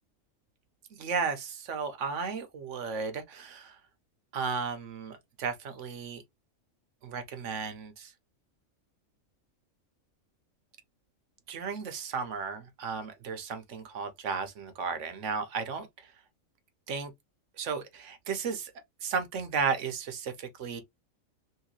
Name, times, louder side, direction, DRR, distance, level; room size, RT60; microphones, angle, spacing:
voice 1, 0.9-3.8 4.3-6.2 7.0-8.1 11.5-16.1 16.9-17.1 17.6-18.7 19.0-20.8, right 5 dB, 70° right, 1.1 m, -34 dB
3.1 x 2.8 x 3.0 m
omnidirectional pair, 1.4 m